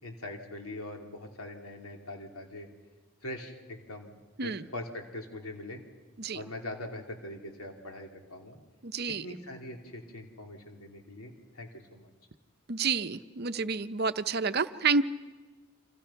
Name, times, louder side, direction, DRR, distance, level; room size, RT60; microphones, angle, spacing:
voice 1, 0.0-2.7 3.2-4.1 4.4-5.8 6.3-8.6 9.1-12.1, left 1 dB, 85° left, 2 dB, 3.1 m, -42 dB
voice 2, 8.8-9.2 12.7-15.0, right 5 dB, 45° right, 11 dB, 0.7 m, -29 dB
29.5 x 27.0 x 5.8 m, 1.2 s
head